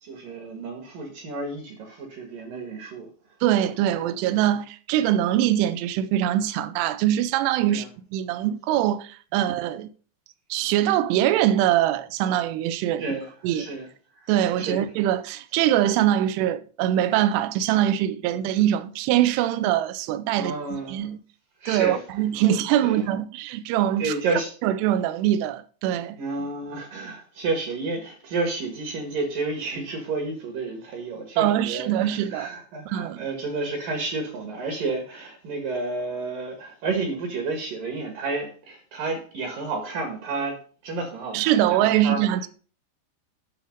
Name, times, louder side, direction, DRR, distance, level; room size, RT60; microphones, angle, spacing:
voice 1, 0.0-3.1 7.7-7.9 13.0-13.9 14.2-14.3 14.6-14.8 20.3-21.1 21.6-22.0 22.4-22.5 22.8-23.1 24.0-24.5 26.2-40.6 40.8-42.3, right 3 dB, 60° right, 2.7 m, -31 dB
voice 2, 3.4-7.9 8.1-9.9 10.5-13.0 13.4-13.7 14.3-21.2 21.7-24.1 24.6-26.2 31.4-32.5 32.9-33.2 41.3-42.5, right 12 dB, 80° right, 2.7 m, -23 dB
9.4 x 6.4 x 5.1 m
omnidirectional pair, 5.1 m